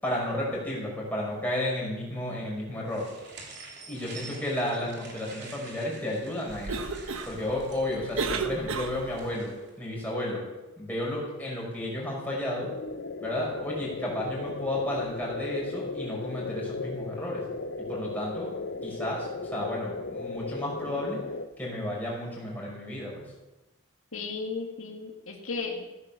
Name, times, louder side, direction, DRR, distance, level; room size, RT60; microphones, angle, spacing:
voice 1, 0.0-3.1 3.9-6.9 7.2-10.4 10.8-12.7 13.2-17.4 17.8-18.5 18.8-21.2 21.6-23.3, left 1 dB, 10° left, -4 dB, 5.6 m, -32 dB
sound 1, 2.9-9.7, right 3 dB, 55° right, 3.2 m, -48 dB
Cough, 6.5-9.3, right 4 dB, 75° right, 1.2 m, -34 dB
sound 2, 12.6-21.5, left 3 dB, 55° left, 0.7 m, -36 dB
voice 2, 24.1-25.9, left 4 dB, 80° left, 1 dB, 2.0 m, -35 dB
15.0 x 9.6 x 7.1 m, 1.0 s
head